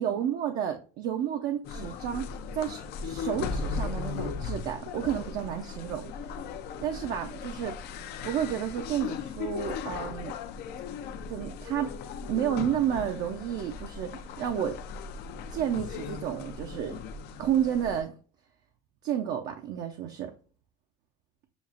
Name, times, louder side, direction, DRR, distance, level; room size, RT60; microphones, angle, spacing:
voice 1, 0.0-6.1 6.8-7.8 8.2-10.3 11.3-12.0 12.3-14.8 15.5-17.0 17.4-18.2 19.0-20.3, right 9 dB, 55° right, 0.6 m, -31 dB
sound 1, 1.6-18.0, left 5 dB, 60° left, 0.5 m, -37 dB
6.9 x 2.4 x 2.4 m
supercardioid pair, 115°, 19 cm